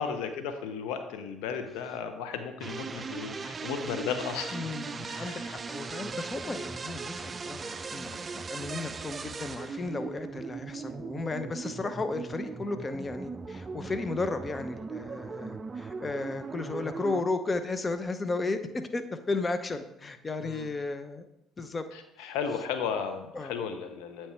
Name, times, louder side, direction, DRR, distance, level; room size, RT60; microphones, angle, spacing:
voice 1, 0.0-4.6 4.9-5.5 15.4-15.5 20.4-20.7 22.2-24.3, left 6 dB, 75° left, 8 dB, 0.6 m, -35 dB
sound 1, 2.6-17.2, right 4 dB, 35° right, 0.4 m, -39 dB
voice 2, 4.5-21.2 21.6-21.9 22.2-22.4 23.3-23.6, left 3 dB, 30° left, 9 dB, 0.7 m, -34 dB
8.5 x 4.5 x 4.4 m, 0.85 s
hypercardioid pair, 60°, 0 cm